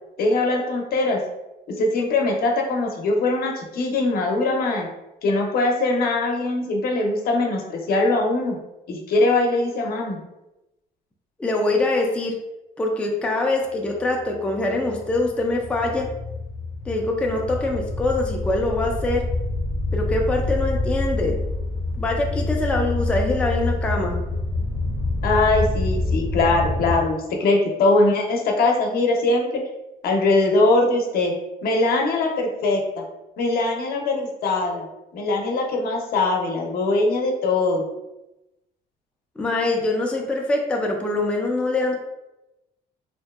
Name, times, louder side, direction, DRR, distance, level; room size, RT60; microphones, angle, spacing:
voice 1, 0.2-1.2 1.8-4.9 5.2-8.6 8.9-10.2 25.2-29.6 30.0-31.3 31.6-32.8 33.4-34.9 35.1-37.9, left 2 dB, 65° left, 1 dB, 0.7 m, -21 dB
voice 2, 11.4-12.3 12.8-16.1 16.9-19.3 19.9-21.4 22.0-24.2 39.4-42.0, left 2 dB, 5° left, 0 dB, 0.3 m, -24 dB
sound 1, 14.2-27.0, left 2 dB, 20° right, 0.7 m, -27 dB
2.8 x 2.6 x 2.3 m, 0.96 s
cardioid pair, 110°, 17 cm